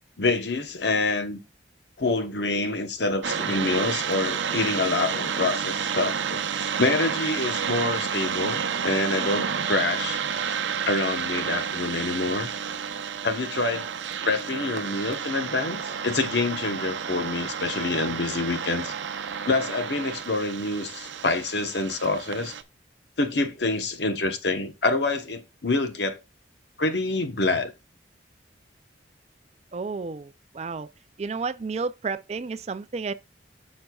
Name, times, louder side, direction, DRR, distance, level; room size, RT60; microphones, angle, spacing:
voice 1, 0.2-1.4 2.0-10.2 10.9-12.5 13.2-13.9 14.2-18.9 19.5-22.5 23.2-26.2 26.8-27.7, left 3 dB, 65° left, 1.0 m, -26 dB
sound 1, 3.2-22.6, right 7 dB, 75° right, 0.6 m, -30 dB
voice 2, 29.7-30.9 31.2-33.1, right 4 dB, 35° right, 0.4 m, -31 dB
10.5 x 6.4 x 2.3 m
head